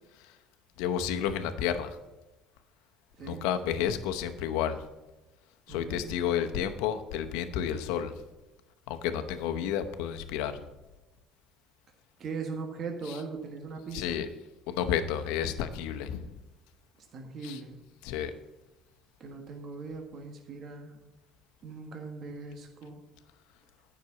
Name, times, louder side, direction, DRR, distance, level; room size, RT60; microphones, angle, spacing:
voice 1, 0.8-2.0 3.3-4.8 5.7-8.1 8.9-10.6 13.1-13.2 13.9-14.3 14.7-16.3 17.4-17.6 18.0-18.3, left 9 dB, 85° left, 8 dB, 0.9 m, -31 dB
voice 2, 5.7-6.1 12.2-14.2 17.1-17.8 19.2-21.0 21.6-23.0, right 4 dB, 50° right, 3 dB, 1.5 m, -40 dB
9.5 x 6.1 x 7.1 m, 1.1 s
supercardioid pair, 95°, 0 cm